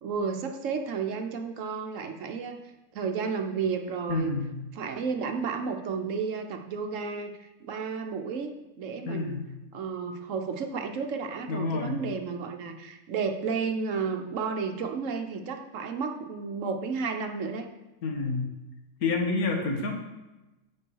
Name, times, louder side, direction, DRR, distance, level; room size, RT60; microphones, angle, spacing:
voice 1, 0.0-2.6 2.9-4.3 4.7-8.5 8.8-9.4 9.7-17.7, right 5 dB, 65° right, 5 dB, 1.0 m, -32 dB
voice 2, 4.1-4.6 9.1-9.5 11.5-12.0 18.0-18.5 19.0-19.9, left 3 dB, 90° left, 2 dB, 1.7 m, -28 dB
8.9 x 5.4 x 4.6 m, 1.0 s
omnidirectional pair, 1.5 m